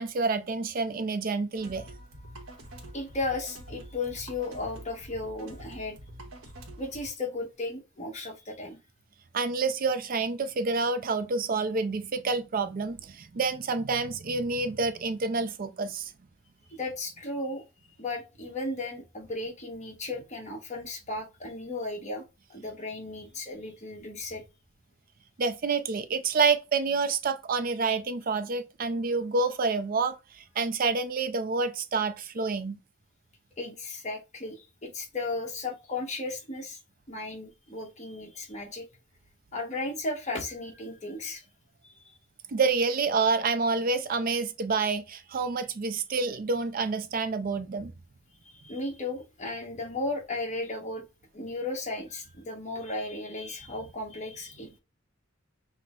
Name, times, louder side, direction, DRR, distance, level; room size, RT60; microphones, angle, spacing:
voice 1, 0.0-1.8 9.3-16.1 25.4-32.8 42.5-47.9, right 4 dB, 45° right, 0.4 m, -28 dB
sound 1, 1.6-7.1, right 1 dB, 85° right, 1.1 m, -46 dB
voice 2, 2.9-6.0 6.8-8.8 16.7-17.6 18.0-22.2 22.5-24.4 33.6-36.8 37.1-38.9 39.5-41.4 41.8-42.1 48.4-51.0 51.3-54.7, left 2 dB, 35° left, 1.2 m, -35 dB
5.9 x 2.1 x 3.7 m
head